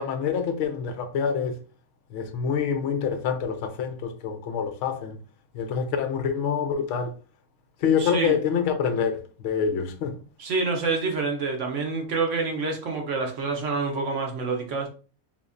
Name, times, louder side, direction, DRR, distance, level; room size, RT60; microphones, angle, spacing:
voice 1, 0.0-1.6 2.1-5.2 5.5-7.1 7.8-10.2, left 7 dB, 65° left, 0.8 m, -26 dB
voice 2, 8.0-8.4 10.4-14.9, right 4 dB, 60° right, 1.0 m, -27 dB
3.5 x 3.1 x 2.5 m
omnidirectional pair, 1.5 m